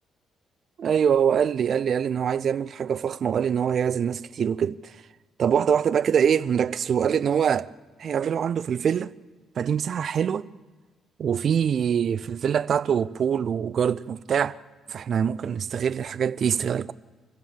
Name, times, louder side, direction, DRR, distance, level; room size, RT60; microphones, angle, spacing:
voice 1, 0.8-4.9 5.4-7.7 8.0-9.1 9.6-10.5 11.2-14.6 14.9-16.9, right 8 dB, 55° right, 0.6 m, -24 dB
26.0 x 16.0 x 7.5 m
cardioid pair, 90°, 0 cm